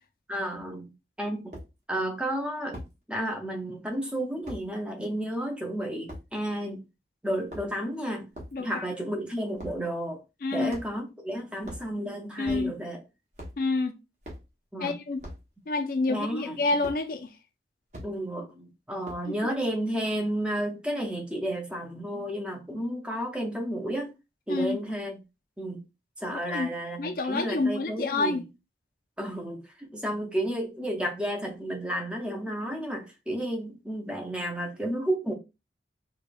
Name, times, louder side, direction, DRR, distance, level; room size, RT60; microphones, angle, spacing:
voice 1, 0.3-0.9 1.2-1.5 1.9-2.8 3.1-6.8 7.2-8.3 8.6-10.2 10.5-13.0 14.7-14.9 16.1-16.6 18.0-24.1 24.5-25.2 25.6-25.8 26.2-28.4 29.2-35.3, right 1 dB, 5° right, 0.5 m, -32 dB
sound 1, 0.5-0.6 1.5-1.7 2.7-2.9 4.5-4.6 6.1-6.3 7.3-7.9 8.3-8.6 9.6-9.8 10.7-11.1 11.6-11.9 12.4-12.9 13.3-13.6 14.2-14.5 15.2-15.5 16.8-17.0 17.9-18.1 19.0-19.4, equal, 40° right, 1.1 m, -41 dB
voice 2, 8.5-8.8 10.4-10.7 12.4-12.7 13.6-14.0 14.8-15.2 15.7-17.3 19.3-19.4 24.5-24.8 26.3-26.7 27.0-28.4, left 3 dB, 50° left, 0.4 m, -28 dB
4.7 x 2.3 x 2.5 m
head